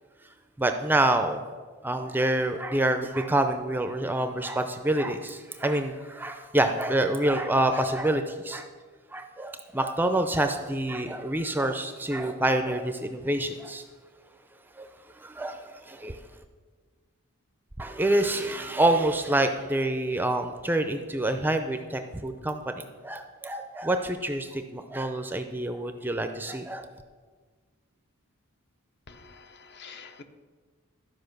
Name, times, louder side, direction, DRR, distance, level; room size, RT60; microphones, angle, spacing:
voice 1, 0.6-1.5 1.8-8.7 9.1-13.8 14.8-14.9 15.2-16.4 17.8-26.9, right 1 dB, 10° right, 7 dB, 0.4 m, -27 dB
voice 2, 29.1-30.2, left 5 dB, 50° left, 8 dB, 0.7 m, -47 dB
12.5 x 5.2 x 6.6 m, 1.5 s
head